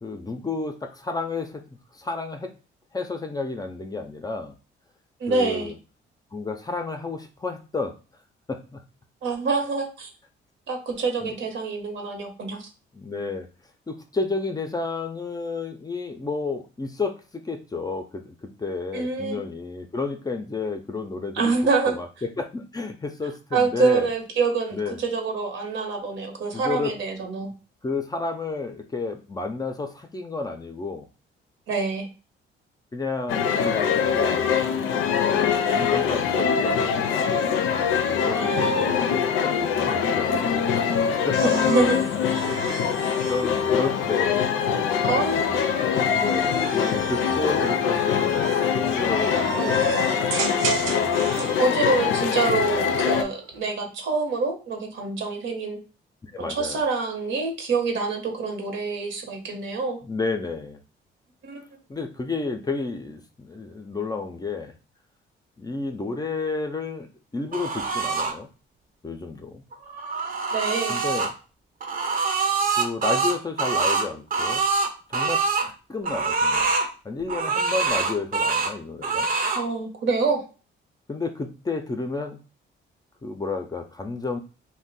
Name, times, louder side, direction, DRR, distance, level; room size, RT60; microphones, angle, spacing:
voice 1, 0.0-1.6 1.9-2.5 2.9-4.5 5.3-5.7 6.3-8.0 8.5-8.8 11.2-11.3 12.9-13.5 13.9-21.5 21.9-22.1 22.4-24.1 24.7-25.0 26.5-26.9 27.8-31.1 32.9-34.6 35.2-37.1 38.2-39.0 39.4-40.6 41.2-41.7 42.6-45.0 46.0-50.1 50.8-51.2 51.9-52.1 56.2-56.8 60.0-60.8 61.9-64.7 65.6-67.1 67.3-68.5 69.0-69.6 70.9-71.3 72.8-76.7 77.0-79.3 81.1-82.4 83.2-84.4, left 3 dB, 20° left, 5 dB, 0.4 m, -31 dB
voice 2, 5.2-5.7 9.2-10.1 10.7-12.7 18.9-19.4 21.3-21.9 23.5-27.5 31.7-32.1 38.4-38.9 41.4-42.0 45.1-45.5 49.5-50.0 51.3-55.8 56.4-60.0 61.4-61.6 70.5-71.0 79.5-80.4, right 4 dB, 70° right, 3 dB, 0.9 m, -26 dB
sound 1, 33.3-53.2, left 7 dB, 90° left, 0.4 m, -23 dB
sound 2, 41.3-44.6 45.4-51.6 53.1-53.6, right 5 dB, 90° right, 0.5 m, -35 dB
sound 3, 67.5-68.3 69.7-71.3 71.8-75.7 76.0-76.9 77.3-78.7 79.0-79.6, right 4 dB, 45° right, 0.6 m, -24 dB
2.5 x 2.1 x 3.9 m, 0.34 s
cardioid pair, 90°, 20 cm